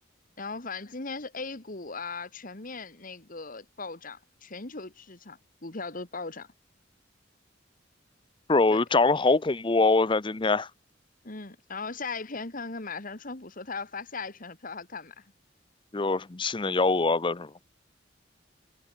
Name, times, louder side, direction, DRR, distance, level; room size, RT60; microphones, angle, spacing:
voice 1, 0.4-6.5 8.7-8.8 11.2-15.3, left 4 dB, 45° left, 1.9 m, -38 dB
voice 2, 8.5-10.7 15.9-17.5, left 3 dB, 25° left, 0.6 m, -23 dB
head